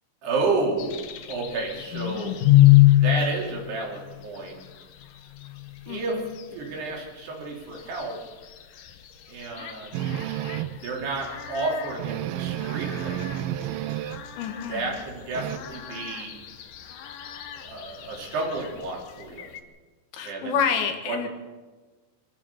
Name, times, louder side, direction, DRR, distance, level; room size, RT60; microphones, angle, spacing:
voice 1, 0.2-1.0 1.3-2.4 2.9-4.6 5.9-6.2 6.5-8.2 9.3-10.0 10.7-13.3 14.7-16.4 17.6-19.5 20.2-20.6 21.1-21.3, right 3 dB, 65° right, -1 dB, 5.4 m, -31 dB
sound 1, 0.8-19.6, left 16 dB, 65° left, 2.3 m, -27 dB
voice 2, 5.9-6.4 14.4-15.0 20.1-21.3, left 7 dB, 80° left, 6 dB, 3.9 m, -28 dB
sound 2, 9.9-10.9 11.3-11.4 11.7-11.8 12.0-14.3 14.6-15.6, right 12 dB, 85° right, 2.1 m, -31 dB
25.0 x 15.0 x 7.1 m, 1.3 s
omnidirectional pair, 5.1 m